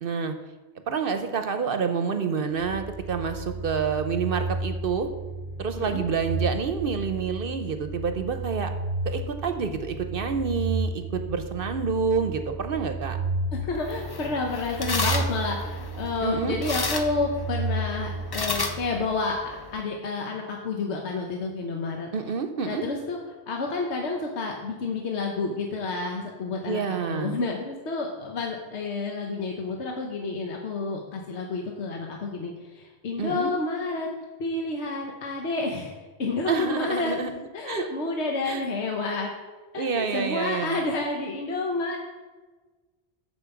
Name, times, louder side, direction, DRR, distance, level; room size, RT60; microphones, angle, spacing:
voice 1, 0.0-0.3 0.9-5.1 5.6-8.7 9.0-13.2 16.2-16.6 22.1-22.9 26.7-27.4 33.2-33.5 36.5-37.3 37.7-37.9 38.5-38.7 39.8-40.8, right 5 dB, 60° right, 7 dB, 0.8 m, -28 dB
sound 1, 2.6-19.4, right 2 dB, 50° left, 1.6 m, -33 dB
voice 2, 13.5-19.4 19.7-22.1 22.6-23.2 23.5-34.1 34.4-35.9 36.2-37.1 37.5-39.3 39.7-42.0, left 3 dB, 80° left, 1 dB, 1.3 m, -30 dB
sound 2, 13.7-19.8, left 3 dB, 30° left, 0.5 m, -33 dB
8.5 x 5.5 x 7.0 m, 1.3 s
omnidirectional pair, 1.1 m